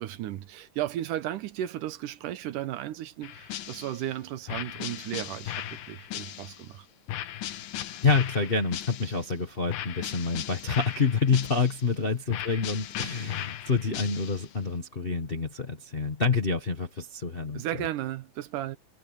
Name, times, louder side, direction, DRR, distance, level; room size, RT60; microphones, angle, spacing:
voice 1, 0.0-6.9 12.0-12.1 17.5-18.8, right 12 dB, 80° right, 2.5 m, -35 dB
sound 1, 3.2-4.1 4.5-6.7 7.1-9.3 9.7-11.9 12.3-14.5, left 11 dB, 80° left, 3.0 m, -37 dB
voice 2, 8.0-17.9, left 4 dB, 55° left, 0.6 m, -27 dB
omnidirectional pair, 3.8 m